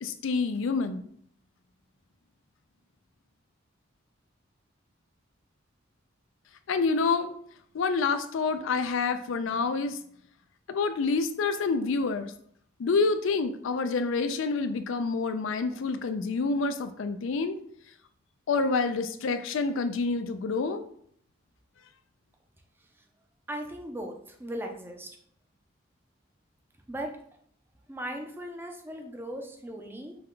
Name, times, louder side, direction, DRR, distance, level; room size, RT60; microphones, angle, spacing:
voice 1, 0.0-1.1 6.7-7.3 7.7-10.0 10.7-12.3 12.8-17.6 18.5-20.8, left 4 dB, 75° left, 10 dB, 0.4 m, -27 dB
voice 2, 23.5-24.1 24.4-25.1 26.9-27.1 27.9-30.1, equal, 10° right, 2 dB, 0.5 m, -37 dB
5.2 x 2.2 x 3.8 m, 0.64 s
head